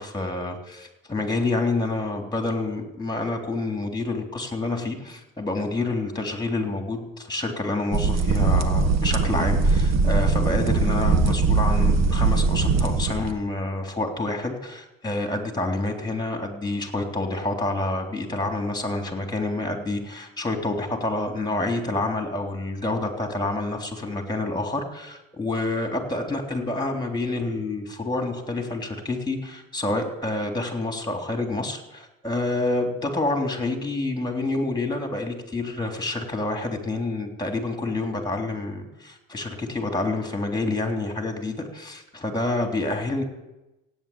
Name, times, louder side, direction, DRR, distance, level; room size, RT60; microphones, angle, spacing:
voice 1, 0.0-43.2, left 2 dB, 15° left, 3 dB, 3.4 m, -28 dB
sound 1, 7.9-13.3, right 4 dB, 60° right, 1.6 m, -21 dB
16.0 x 9.4 x 8.8 m, 0.99 s
cardioid pair, 90°, 30 cm